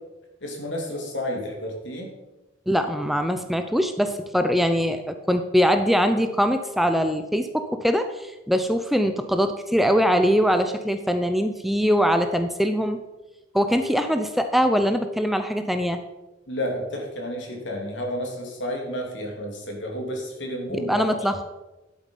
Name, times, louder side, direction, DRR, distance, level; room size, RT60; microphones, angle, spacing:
voice 1, 0.4-2.1 16.5-21.3, left 1 dB, 70° left, 1 dB, 2.9 m, -31 dB
voice 2, 2.7-13.0 13.5-16.0 20.7-21.5, equal, ahead, 7 dB, 0.6 m, -22 dB
11.5 x 8.2 x 5.4 m, 1.0 s
head